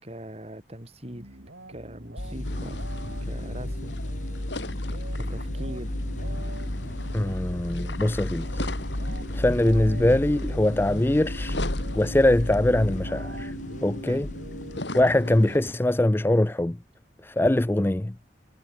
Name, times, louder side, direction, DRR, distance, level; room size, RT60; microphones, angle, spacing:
voice 1, 0.0-2.8 3.2-4.0 5.1-5.9 14.1-14.3, right 1 dB, 35° right, 5.8 m, -41 dB
sound 1, 1.0-15.4, right 2 dB, 80° right, 4.2 m, -46 dB
sound 2, 2.2-14.8, left 1 dB, 40° left, 1.6 m, -33 dB
sound 3, 2.4-15.6, left 1 dB, 80° left, 6.6 m, -38 dB
voice 2, 7.1-8.7 9.3-11.6 11.9-13.5 13.8-14.3 14.9-16.8 17.2-18.1, left 1 dB, 10° left, 0.4 m, -22 dB
head